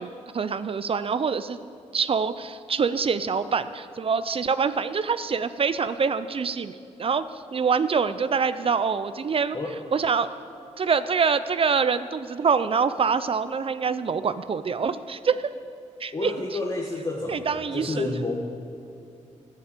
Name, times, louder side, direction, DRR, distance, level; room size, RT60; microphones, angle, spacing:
voice 1, 0.0-1.6 1.9-9.6 9.9-10.3 10.8-15.5 16.0-16.3 17.3-18.0, right 5 dB, 45° right, 13 dB, 0.6 m, -25 dB
voice 2, 16.1-18.3, left 2 dB, 35° left, -1 dB, 1.6 m, -30 dB
12.0 x 9.9 x 6.8 m, 2.7 s
cardioid pair, 70°, 13 cm